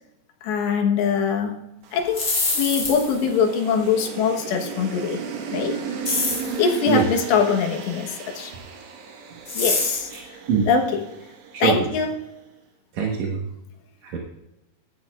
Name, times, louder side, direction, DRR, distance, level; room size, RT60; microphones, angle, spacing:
voice 1, 0.4-1.6 1.9-2.3 2.5-5.2 5.5-5.8 6.6-8.5 9.6-10.1 10.7-11.0 11.6-12.2, left 6 dB, 90° left, 2 dB, 3.5 m, -22 dB
sound 1, 1.8-12.2, right 6 dB, 85° right, 3.7 m, -36 dB
sound 2, 2.0-3.2 6.0-6.6 9.5-10.2, left 2 dB, 30° left, 3.9 m, -25 dB
voice 2, 11.5-11.9 12.9-13.4 14.0-14.2, right 6 dB, 65° right, -1 dB, 1.9 m, -23 dB
15.5 x 11.0 x 2.4 m, 0.90 s
omnidirectional pair, 4.8 m